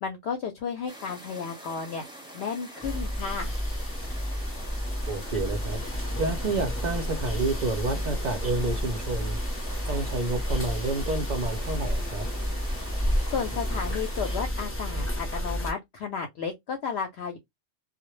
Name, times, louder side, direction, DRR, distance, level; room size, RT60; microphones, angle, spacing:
voice 1, 0.0-2.0 2.3-3.5 13.3-17.4, left 6 dB, 65° left, 0.7 m, -33 dB
sound 1, 0.9-14.4, right 1 dB, 5° right, 0.7 m, -45 dB
sound 2, 2.8-15.7, equal, 20° left, 0.3 m, -30 dB
voice 2, 5.1-5.8 6.2-9.4 9.9-12.3, right 3 dB, 80° right, 0.4 m, -29 dB
2.1 x 2.0 x 3.0 m
omnidirectional pair, 1.3 m